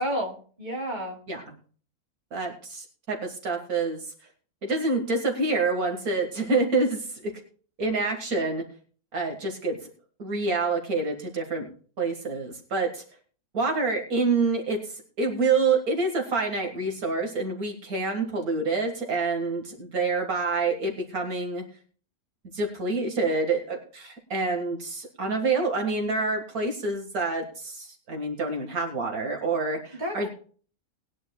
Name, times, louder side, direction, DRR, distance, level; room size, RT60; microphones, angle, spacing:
voice 1, 0.0-1.2 30.0-30.3, equal, 30° right, -1 dB, 3.0 m, -31 dB
voice 2, 2.3-4.0 4.6-7.3 7.8-8.6 9.1-9.8 10.2-11.7 12.0-13.0 13.5-21.6 22.5-30.3, right 3 dB, 75° right, 3 dB, 2.2 m, -27 dB
20.0 x 10.0 x 2.3 m, 0.43 s
omnidirectional pair, 1.5 m